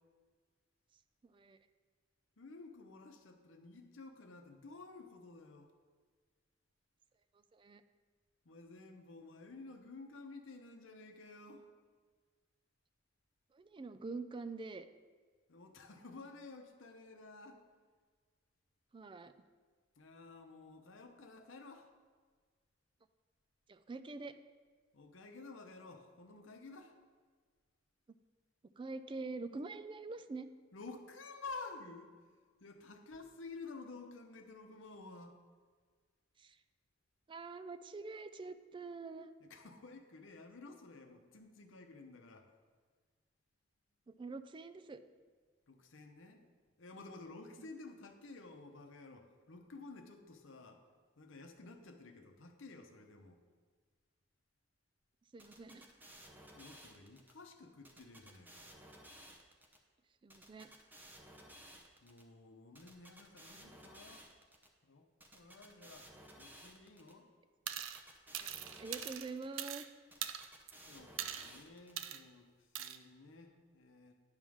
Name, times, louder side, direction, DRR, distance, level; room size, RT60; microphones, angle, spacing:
voice 1, 1.2-1.6 7.5-7.8 13.5-14.9 18.9-19.3 23.7-24.4 28.8-30.5 36.4-36.6 37.3-39.3 44.1-45.0 47.6-47.7 55.3-55.9 60.2-60.7 68.4-68.5 68.8-69.8, right 3 dB, 25° right, 11 dB, 0.3 m, -45 dB
voice 2, 2.4-5.7 8.4-11.7 15.5-17.6 20.0-21.9 24.9-26.9 30.7-32.1 32.6-35.4 39.4-42.5 45.7-46.5 46.8-50.8 51.2-53.4 56.5-58.8 62.0-64.3 64.8-65.1 65.3-66.1 66.4-67.3 70.8-72.5 72.8-74.1, left 3 dB, 75° left, 5 dB, 0.8 m, -52 dB
sound 1, 55.4-57.3 57.8-59.8 60.3-62.2 62.8-64.7 65.2-67.1 67.7-69.6 70.1-72.0, equal, 10° right, 0.7 m, -56 dB
sound 2, 67.7-68.0 68.3-69.9 70.2-70.7 71.2-71.5 72.0-72.2 72.7-73.0, right 10 dB, 85° right, 0.5 m, -42 dB
9.7 x 3.6 x 6.2 m, 1.5 s
head